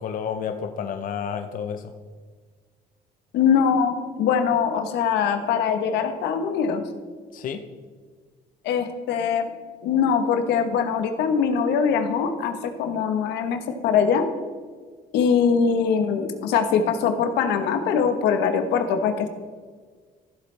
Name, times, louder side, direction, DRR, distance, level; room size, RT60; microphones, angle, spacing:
voice 1, 0.0-1.9 7.3-7.6, left 7 dB, 55° left, 6 dB, 0.7 m, -30 dB
voice 2, 3.3-6.8 8.6-9.5 9.8-14.2 15.1-19.3, left 6 dB, 85° left, 7 dB, 1.1 m, -22 dB
14.5 x 7.7 x 3.3 m, 1.5 s
cardioid pair, 110°, 17 cm